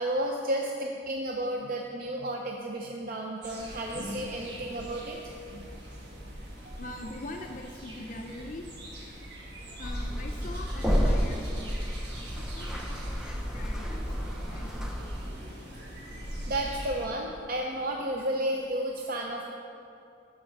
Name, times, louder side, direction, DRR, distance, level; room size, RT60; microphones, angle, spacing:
voice 1, 0.0-5.7 6.6-7.1 16.5-19.4, right 1 dB, 55° right, 1 dB, 0.6 m, -32 dB
sound 1, 3.4-17.1, equal, 80° right, 1.6 m, -41 dB
voice 2, 6.8-8.7 9.8-11.8 12.2-14.7, left 2 dB, 50° left, 3 dB, 0.5 m, -43 dB
sound 2, 9.8-15.3, equal, 5° right, 0.6 m, -31 dB
11.5 x 4.8 x 5.3 m, 2.7 s
head